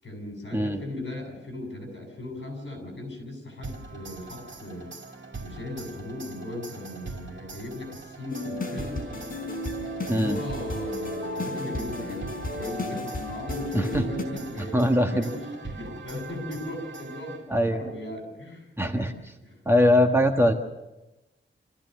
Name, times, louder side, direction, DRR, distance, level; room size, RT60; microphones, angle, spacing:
voice 1, 0.0-4.9 5.4-9.1 10.0-18.7 19.4-19.6, left 1 dB, 60° left, 2 dB, 7.7 m, -37 dB
sound 1, 3.6-17.7, right 3 dB, 60° right, 2.6 m, -42 dB
sound 2, 8.3-14.2, left 1 dB, 45° left, 5.0 m, -33 dB
voice 2, 10.1-10.4 13.7-14.0 14.7-15.2 17.5-17.8 18.8-19.1 19.6-20.5, left 1 dB, 10° right, 3 dB, 1.4 m, -21 dB
27.5 x 15.0 x 6.7 m, 1.0 s
wide cardioid pair, 120°, 21 cm